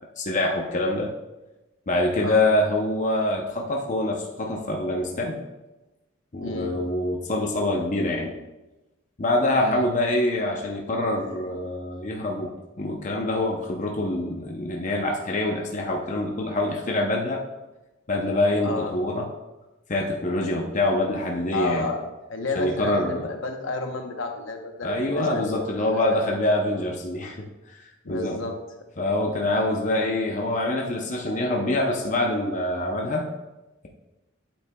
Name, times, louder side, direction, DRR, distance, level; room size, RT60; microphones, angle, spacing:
voice 1, 0.2-1.1 1.9-5.4 6.3-8.4 9.2-12.5 12.8-17.4 18.1-19.3 19.9-21.9 22.6-23.3 24.8-27.4 27.7-27.8 28.1-28.4 29.0-33.3, left 1 dB, 40° left, 0 dB, 0.7 m, -25 dB
voice 2, 6.4-6.8 9.6-9.9 18.6-18.9 21.5-26.2 28.0-28.5, left 3 dB, 70° left, 4 dB, 1.0 m, -31 dB
8.6 x 8.3 x 2.3 m, 1.1 s
head